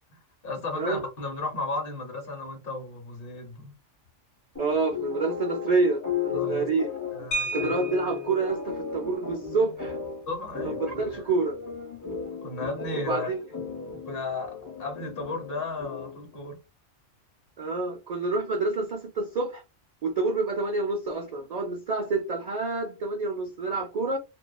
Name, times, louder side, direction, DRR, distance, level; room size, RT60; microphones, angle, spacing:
voice 1, 0.1-3.7 6.3-6.7 7.1-7.7 10.3-10.8 12.4-13.3 14.1-16.6, left 3 dB, 50° left, 0.9 m, -34 dB
sound 1, 4.5-16.3, left 7 dB, 20° left, 0.5 m, -35 dB
voice 2, 4.6-6.9 7.5-10.0 10.6-11.6 12.9-13.4 17.6-19.6 20.0-24.2, right 3 dB, 70° right, 0.4 m, -28 dB
sound 2, 7.3-8.4 9.8-10.0 10.3-10.5 10.9-11.2, right 2 dB, 75° left, 0.9 m, -33 dB
2.4 x 2.4 x 2.2 m
omnidirectional pair, 1.3 m